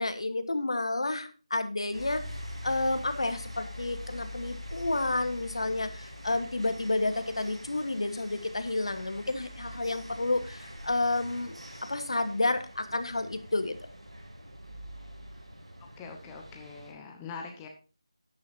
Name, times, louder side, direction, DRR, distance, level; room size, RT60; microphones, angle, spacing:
voice 1, 0.0-2.2 2.6-11.6 11.9-13.7, left 2 dB, 65° left, 10 dB, 1.4 m, -30 dB
sound 1, 1.9-16.9, left 1 dB, 80° right, 5.8 m, -44 dB
voice 2, 16.0-17.7, left 5 dB, 10° left, 2 dB, 1.0 m, -43 dB
12.5 x 9.7 x 2.7 m, 0.34 s
figure-of-eight pair, 165°, 3 cm